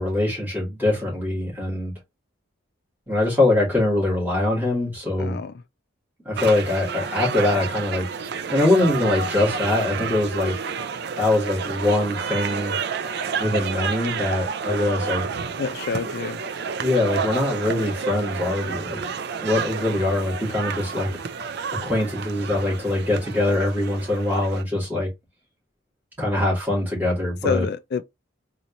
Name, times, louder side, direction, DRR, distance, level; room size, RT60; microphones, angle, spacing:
voice 1, 0.0-1.9 3.1-5.4 6.3-8.0 8.5-10.5 11.2-12.8 13.4-15.2 16.8-19.0 19.4-21.1 21.8-25.1 26.2-27.7, left 2 dB, 10° right, 2.2 m, -23 dB
voice 2, 5.2-5.5 15.6-16.4 27.4-28.0, left 5 dB, 50° left, 0.3 m, -27 dB
sound 1, 6.4-24.6, right 6 dB, 50° right, 0.4 m, -30 dB
4.0 x 3.0 x 2.6 m
head